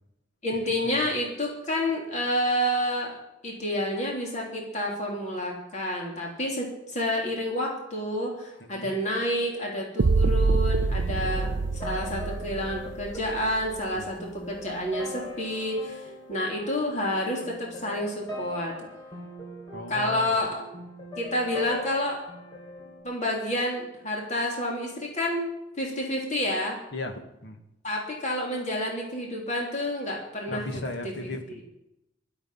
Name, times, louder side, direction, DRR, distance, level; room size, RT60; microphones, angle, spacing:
voice 1, 0.4-3.1 3.4-11.5 11.8-18.7 19.9-20.6 21.2-22.2 23.0-25.4 25.8-26.7 27.8-30.7 31.2-31.3, left 1 dB, 40° left, -2 dB, 3.4 m, -29 dB
voice 2, 8.6-8.9 11.2-11.3 13.9-14.1 19.7-20.3 26.9-27.6 30.5-31.6, left 2 dB, 65° left, 5 dB, 2.0 m, -37 dB
sound 1, 10.0-14.0, right 3 dB, 65° right, 0.5 m, -26 dB
sound 2, 10.8-23.0, equal, 20° left, 4.4 m, -41 dB
23.5 x 8.1 x 5.7 m, 0.88 s
head